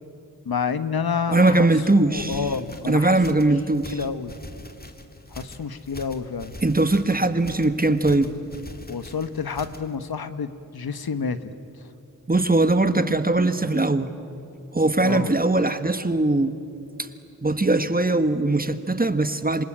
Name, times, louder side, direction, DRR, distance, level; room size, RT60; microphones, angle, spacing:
voice 1, 0.4-1.7 2.0-3.2 3.9-4.3 5.3-6.5 8.9-11.5 11.8-11.9 15.0-15.3, left 5 dB, 70° left, 11 dB, 1.3 m, -29 dB
voice 2, 1.3-2.4 2.8-4.0 6.6-8.3 12.3-14.1 14.7-16.6 17.0-17.1 17.4-19.6, right 2 dB, 25° right, 10 dB, 1.5 m, -20 dB
sound 1, 2.0-9.9, left 1 dB, 25° left, 2.2 m, -43 dB
26.5 x 25.0 x 8.9 m, 2.7 s
cardioid pair, 45°, 38 cm